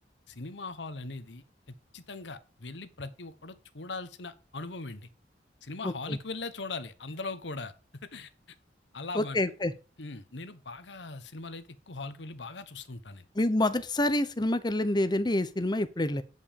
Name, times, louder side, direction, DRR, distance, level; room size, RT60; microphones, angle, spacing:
voice 1, 0.3-1.4 1.9-5.1 5.6-7.7 8.0-8.3 8.9-9.4 10.0-13.2, left 3 dB, 80° left, 1.2 m, -40 dB
voice 2, 5.8-6.2 9.1-9.7 13.4-16.2, left 1 dB, 25° left, 0.9 m, -27 dB
9.4 x 5.6 x 6.8 m
head